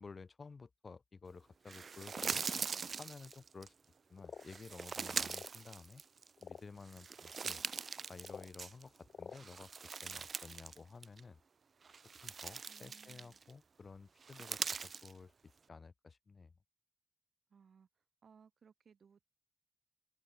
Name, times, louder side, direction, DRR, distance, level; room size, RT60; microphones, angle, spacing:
voice 1, 0.0-2.5 3.0-3.7 4.1-6.0 6.4-7.6 8.1-9.7 10.0-11.4 12.2-15.3 15.7-16.5, left 4 dB, 45° left, 6.9 m, -53 dB
sound 1, 1.7-3.7 4.4-6.4 6.8-9.0 9.3-10.8 11.0-11.2 11.8-13.5 14.2-15.1, right 5 dB, 60° right, 1.1 m, -42 dB
sound 2, 2.1-2.4 3.3-3.4 4.2-4.5 5.2-5.5 6.4-6.6 8.2-8.5 9.1-9.4, left 6 dB, 75° left, 0.6 m, -49 dB
voice 2, 12.7-13.4 17.5-17.9 18.2-19.3, right 6 dB, 80° right, 4.2 m, -64 dB
open air
wide cardioid pair, 170°, 0 cm